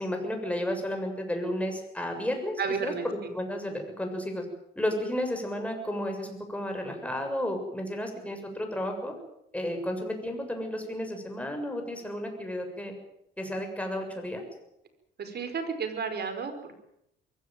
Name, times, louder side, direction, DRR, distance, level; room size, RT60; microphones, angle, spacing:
voice 1, 0.0-2.5 2.8-4.4 4.8-9.1 9.5-12.9 13.4-14.4, left 1 dB, 5° left, 4 dB, 7.1 m, -32 dB
voice 2, 2.6-3.1 15.2-16.7, right 5 dB, 55° right, 8 dB, 5.1 m, -32 dB
23.0 x 16.5 x 9.0 m, 0.79 s
cardioid pair, 90°, 20 cm